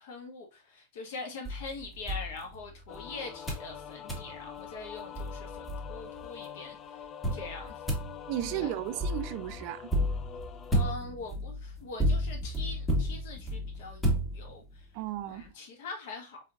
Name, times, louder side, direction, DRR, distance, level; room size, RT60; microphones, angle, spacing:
voice 1, 0.0-6.8 7.3-7.8 8.4-8.7 10.7-14.0 14.3-14.9 15.3-16.4, left 3 dB, 60° left, 1.3 m, -43 dB
sound 1, 1.4-3.0 3.5-3.7 4.1-4.3 4.8-4.9 5.2-6.3 7.2-14.8, equal, 10° left, 1.6 m, -32 dB
sound 2, 2.9-10.9, left 8 dB, 35° left, 0.4 m, -45 dB
voice 2, 8.3-9.9 14.9-15.5, right 13 dB, 50° right, 0.4 m, -34 dB
4.4 x 3.4 x 2.4 m
figure-of-eight pair, 95°, 0 cm